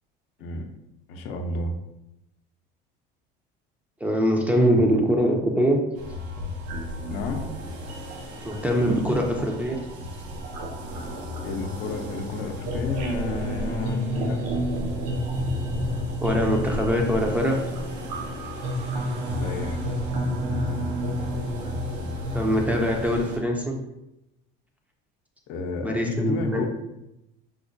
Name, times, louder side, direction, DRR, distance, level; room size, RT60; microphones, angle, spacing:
voice 1, 1.1-1.7 7.1-7.5 11.4-14.4 19.4-19.8 25.5-26.7, left 4 dB, 70° left, 5 dB, 0.5 m, -31 dB
voice 2, 4.0-5.8 8.4-9.8 16.2-17.6 22.3-23.8 25.8-26.7, equal, 5° right, 0 dB, 0.4 m, -23 dB
sound 1, 6.0-23.4, equal, 85° right, 0.7 m, -30 dB
4.8 x 2.1 x 2.5 m, 0.88 s
cardioid pair, 135°, 21 cm